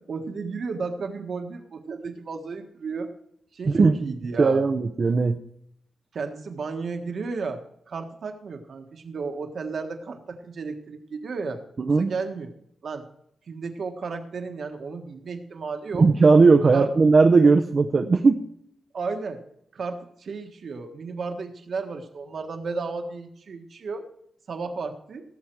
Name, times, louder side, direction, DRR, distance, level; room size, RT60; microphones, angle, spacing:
voice 1, 0.1-3.1 3.5-4.6 6.1-7.6 7.9-11.6 12.0-12.5 12.8-13.1 13.5-16.1 16.7-16.9 18.9-19.4 19.7-24.0 24.5-25.2, right 4 dB, 60° right, 5 dB, 1.5 m, -33 dB
voice 2, 4.4-5.4 11.8-12.1 15.9-18.4, right 4 dB, 40° right, 6 dB, 0.6 m, -18 dB
18.0 x 7.4 x 4.6 m, 0.73 s
wide cardioid pair, 135°, 0 cm